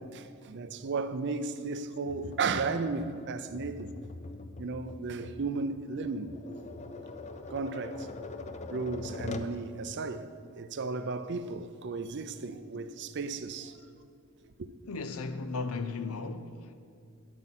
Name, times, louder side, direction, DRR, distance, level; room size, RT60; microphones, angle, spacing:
voice 1, 0.0-3.9 4.6-6.3 7.5-8.1 8.7-13.8 14.6-14.7, right 4 dB, 55° right, 0.5 m, -34 dB
Tap, 2.1-9.6, left 3 dB, 30° left, 0.5 m, -43 dB
voice 2, 14.9-16.7, left 4 dB, 85° left, 0.7 m, -36 dB
12.5 x 11.0 x 4.3 m
head